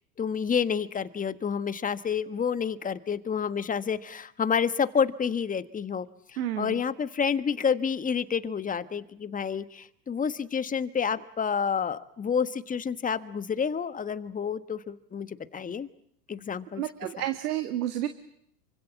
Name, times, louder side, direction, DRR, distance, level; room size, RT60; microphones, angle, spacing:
voice 1, 0.2-6.1 6.3-15.9 16.3-16.8, left 6 dB, 15° left, 13 dB, 1.4 m, -29 dB
voice 2, 6.4-6.8 16.8-18.1, right 12 dB, 75° right, 9 dB, 2.2 m, -30 dB
28.0 x 25.0 x 7.2 m, 0.70 s
hypercardioid pair, 105°, 46 cm